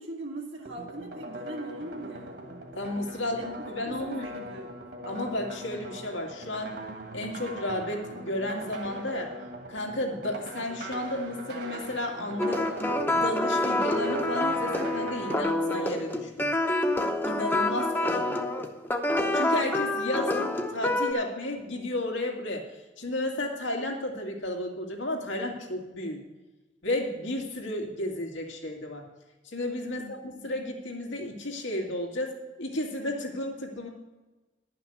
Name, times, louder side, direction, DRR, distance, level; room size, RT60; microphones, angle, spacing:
voice 1, 0.0-2.4 3.3-4.8 29.8-30.4, right 2 dB, 80° right, -2 dB, 1.4 m, -41 dB
sound 1, 0.6-15.4, right 1 dB, 60° right, 1.7 m, -40 dB
voice 2, 2.8-4.3 5.1-6.7 7.1-9.3 9.7-12.7 13.1-16.5 17.2-18.4 19.3-22.7 23.0-26.2 26.8-29.0 29.4-33.9, left 1 dB, 90° left, 1 dB, 2.1 m, -33 dB
sound 2, 12.4-21.1, left 1 dB, 10° left, 0.8 m, -27 dB
11.0 x 5.9 x 7.8 m, 1.1 s
head